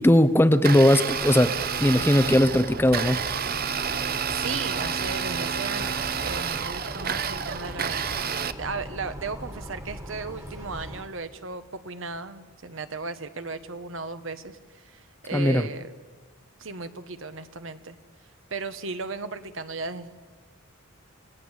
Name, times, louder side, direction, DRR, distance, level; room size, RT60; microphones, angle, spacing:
voice 1, 0.0-1.6 1.8-3.2 15.3-15.7, left 1 dB, 10° left, 0.7 m, -19 dB
Domestic sounds home sounds, 0.5-8.5, right 7 dB, 45° right, 0.9 m, -29 dB
sound 1, 1.1-11.0, equal, 15° right, 1.9 m, -40 dB
voice 2, 4.3-15.9 16.6-18.0 18.5-20.1, right 4 dB, 65° right, 1.3 m, -36 dB
29.0 x 18.5 x 8.3 m
head